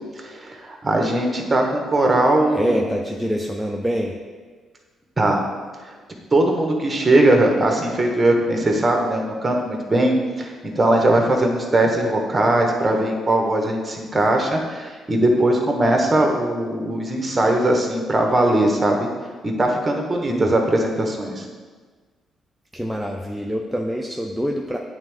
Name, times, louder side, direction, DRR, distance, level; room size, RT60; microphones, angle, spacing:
voice 1, 0.2-2.9 5.2-5.4 5.8-5.9 6.3-19.1 19.4-21.5, right 1 dB, 20° right, 1 dB, 1.1 m, -20 dB
voice 2, 2.5-4.2 20.2-20.5 22.7-24.8, equal, ahead, 0 dB, 0.4 m, -25 dB
8.9 x 3.5 x 3.4 m, 1.5 s
cardioid pair, 90°, 0 cm